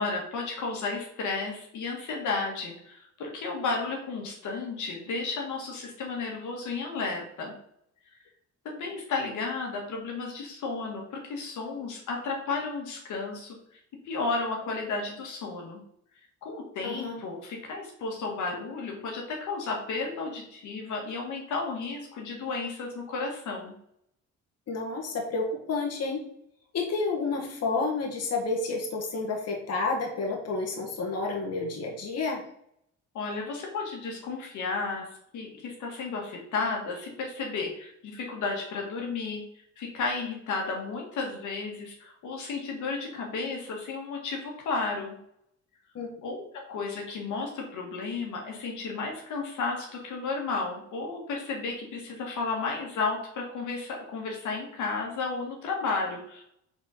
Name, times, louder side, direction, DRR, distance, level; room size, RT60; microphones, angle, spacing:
voice 1, 0.0-7.5 8.6-13.6 14.0-15.8 16.4-23.7 33.1-35.1 35.3-39.4 39.8-45.2 46.2-56.5, left 4 dB, 80° left, 0 dB, 1.7 m, -33 dB
voice 2, 16.8-17.2 24.7-26.2 26.7-32.4 45.9-46.1, left 3 dB, 55° left, 1 dB, 1.5 m, -30 dB
4.3 x 4.1 x 5.6 m, 0.72 s
cardioid pair, 90°, 30 cm